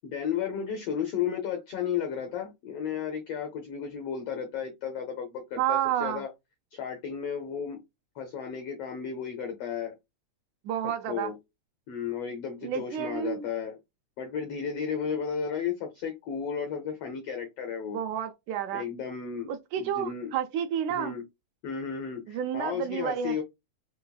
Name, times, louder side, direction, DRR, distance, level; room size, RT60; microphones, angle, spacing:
voice 1, 0.0-6.3 6.7-7.8 8.2-9.9 11.1-11.4 11.9-13.8 14.2-18.0 18.7-19.5 19.8-20.3 20.9-21.2 21.6-23.4, left 7 dB, 85° left, 1.3 m, -33 dB
voice 2, 5.6-6.2 10.6-11.3 12.6-13.4 17.9-18.8 19.5-21.1 22.3-23.4, right 10 dB, 80° right, 1.8 m, -30 dB
5.4 x 2.3 x 2.2 m
omnidirectional pair, 3.6 m